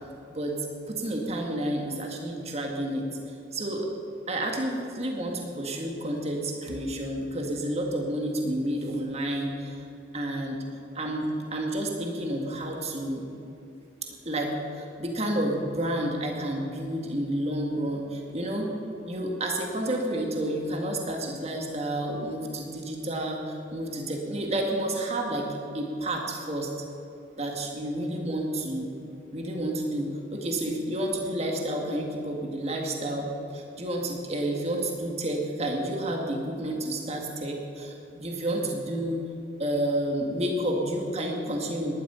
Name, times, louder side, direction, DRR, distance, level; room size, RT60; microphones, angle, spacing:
voice 1, 0.9-3.9 4.3-9.8 10.1-10.6 10.9-13.2 14.0-18.7 19.1-25.5 25.7-26.7 27.4-28.9 29.3-39.2 39.6-41.9, right 1 dB, 35° right, 1 dB, 1.9 m, -30 dB
18.0 x 12.0 x 5.6 m, 2.7 s
head